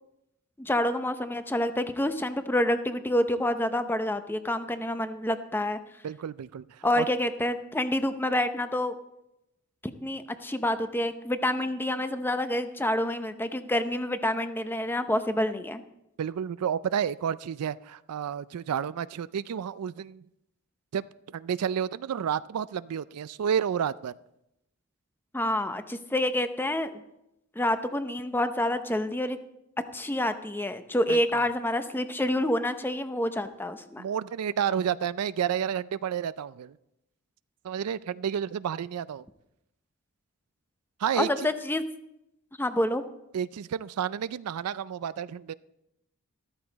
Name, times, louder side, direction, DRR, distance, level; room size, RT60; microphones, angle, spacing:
voice 1, 0.6-5.8 6.8-8.9 10.0-15.8 25.3-27.0 27.6-29.4 29.9-34.0 41.2-41.8 42.6-43.0, left 1 dB, 10° left, 9 dB, 0.7 m, -28 dB
voice 2, 6.0-7.1 16.2-20.3 20.9-21.1 21.3-24.1 31.1-31.2 34.0-36.8 37.6-39.3 41.0-41.5 43.3-45.5, right 8 dB, 85° right, 16 dB, 0.4 m, -30 dB
13.5 x 13.5 x 4.0 m, 0.86 s
head